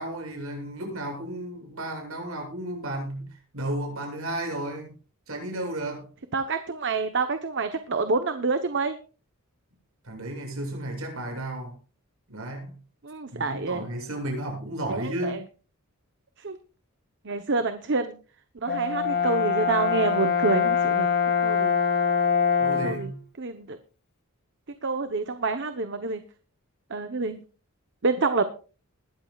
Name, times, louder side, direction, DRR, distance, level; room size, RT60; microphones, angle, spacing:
voice 1, 0.0-5.0 5.3-6.1 10.0-11.8 12.3-12.8 13.3-15.4 22.6-23.2, right 1 dB, 70° right, 7.6 m, -33 dB
voice 2, 6.3-9.0 13.0-13.9 14.9-15.4 16.4-16.6 17.2-18.2 18.6-21.1 21.4-21.8 22.8-23.1 23.4-23.8 24.8-26.2 26.9-27.4 28.0-28.4, right 3 dB, 55° right, 1.0 m, -27 dB
Brass instrument, 18.7-23.1, left 6 dB, 45° left, 2.8 m, -24 dB
20.5 x 13.0 x 2.4 m
head